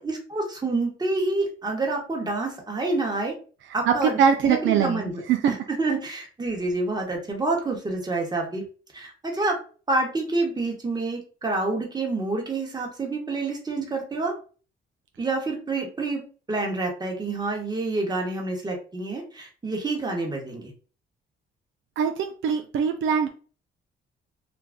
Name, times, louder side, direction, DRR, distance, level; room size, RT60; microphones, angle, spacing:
voice 1, 0.0-3.3 3.7-8.7 8.9-9.6 9.9-14.3 15.2-16.2 16.5-20.7, right 2 dB, 20° right, 0 dB, 1.1 m, -28 dB
voice 2, 3.9-5.5 22.0-23.3, right 7 dB, 75° right, 5 dB, 0.4 m, -22 dB
2.5 x 2.2 x 3.4 m, 0.38 s
cardioid pair, 90°, 20 cm